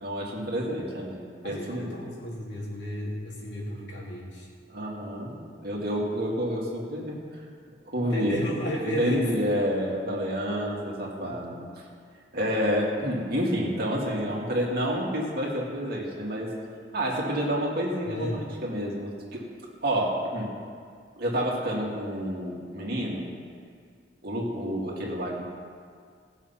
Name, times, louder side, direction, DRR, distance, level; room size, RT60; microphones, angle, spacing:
voice 1, 0.0-1.9 4.7-7.2 7.8-8.4 8.8-11.5 12.3-16.5 16.9-19.4 19.8-20.5 21.2-23.3 24.2-25.4, equal, 60° right, -3 dB, 2.5 m, -29 dB
voice 2, 1.4-4.5 7.9-9.3 11.2-11.3 18.0-18.6, equal, 75° left, -5 dB, 3.2 m, -34 dB
17.5 x 7.3 x 5.8 m, 2.1 s
head